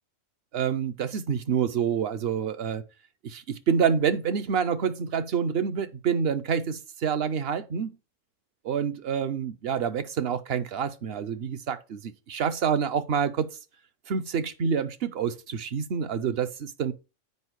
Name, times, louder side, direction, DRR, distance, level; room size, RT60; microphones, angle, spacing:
voice 1, 0.5-2.8 3.2-8.0 8.6-13.5 14.1-16.9, right 7 dB, 55° right, 0.8 m, -27 dB
8.2 x 5.1 x 4.6 m
omnidirectional pair, 1.3 m